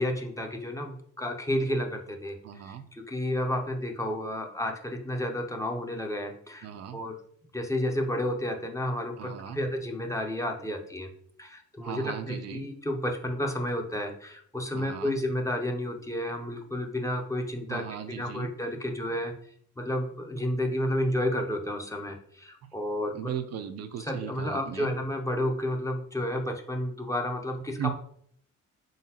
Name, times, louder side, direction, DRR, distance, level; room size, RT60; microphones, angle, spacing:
voice 1, 0.0-7.2 7.5-11.1 11.4-19.3 19.8-23.1 24.0-27.9, left 1 dB, 10° left, 3 dB, 0.6 m, -31 dB
voice 2, 2.4-2.9 6.6-7.0 9.2-9.6 11.8-12.7 14.7-15.2 17.7-18.5 23.1-24.9 27.8-27.9, right 9 dB, 60° right, 7 dB, 0.5 m, -37 dB
3.9 x 3.5 x 2.8 m, 0.63 s
cardioid pair, 90°, 30 cm